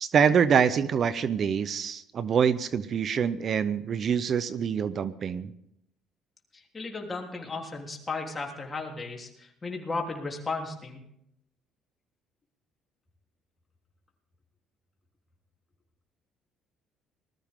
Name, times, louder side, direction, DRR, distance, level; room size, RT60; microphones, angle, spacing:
voice 1, 0.0-5.5, right 7 dB, 50° right, 15 dB, 0.7 m, -25 dB
voice 2, 6.7-9.3 9.6-11.0, left 3 dB, 25° left, 1 dB, 3.3 m, -34 dB
20.0 x 13.5 x 3.7 m, 0.76 s
cardioid pair, 95°, 0 cm